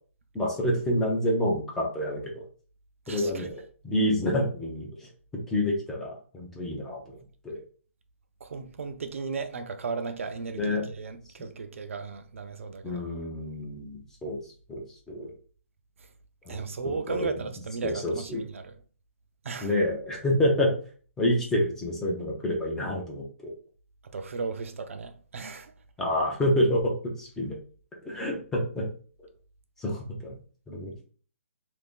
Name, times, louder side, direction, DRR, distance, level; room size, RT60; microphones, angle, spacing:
voice 1, 0.3-2.4 3.1-5.1 5.5-7.2 7.4-7.6 10.5-10.8 11.4-11.5 12.8-14.4 14.7-15.3 16.5-17.3 17.8-18.5 19.6-20.7 21.2-23.5 26.0-27.6 28.0-28.9 29.8-30.4 30.7-31.1, left 1 dB, 5° left, 0.5 m, -28 dB
voice 2, 3.1-3.5 8.4-13.0 16.5-18.7 19.4-19.7 24.1-25.7, right 4 dB, 65° right, 0.5 m, -35 dB
2.6 x 2.6 x 3.6 m
hypercardioid pair, 165°, 8 cm